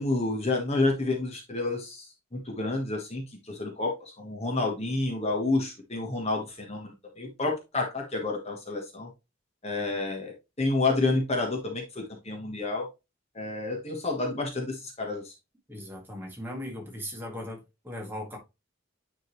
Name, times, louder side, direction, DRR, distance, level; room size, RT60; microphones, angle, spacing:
voice 1, 0.0-9.1 9.6-12.9 13.3-15.3, left 2 dB, 30° left, 1.2 m, -29 dB
voice 2, 15.7-17.6 17.8-18.4, left 1 dB, 10° right, 1.9 m, -38 dB
9.5 x 3.8 x 3.1 m
head